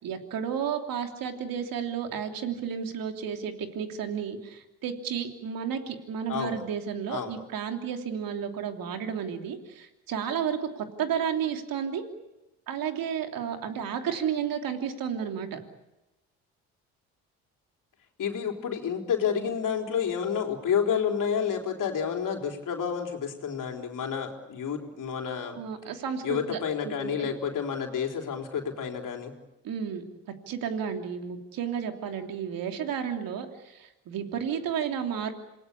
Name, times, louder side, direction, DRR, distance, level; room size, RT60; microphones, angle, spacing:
voice 1, 0.0-12.0 12.7-15.6 25.5-26.6 27.0-27.3 29.6-30.0 30.5-35.3, right 8 dB, 65° right, 5 dB, 3.1 m, -32 dB
voice 2, 6.3-6.6 7.1-7.4 18.2-25.6 26.2-29.3, left 7 dB, 55° left, 3 dB, 4.0 m, -30 dB
27.5 x 19.5 x 8.6 m, 0.97 s
supercardioid pair, 65°, 37 cm